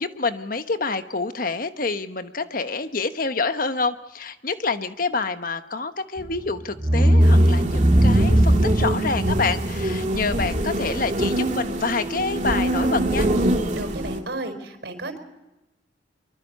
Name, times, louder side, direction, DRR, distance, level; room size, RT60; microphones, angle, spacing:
voice 1, 0.0-13.3, left 4 dB, 50° left, 10 dB, 1.2 m, -27 dB
sound 1, 6.2-6.4 6.8-11.4, right 1 dB, 25° right, 1.0 m, -19 dB
sound 2, 7.2-14.2, right 1 dB, 40° right, 2.5 m, -25 dB
voice 2, 13.7-15.2, right 2 dB, 65° right, 6 dB, 5.0 m, -33 dB
24.0 x 23.5 x 5.5 m, 0.98 s
head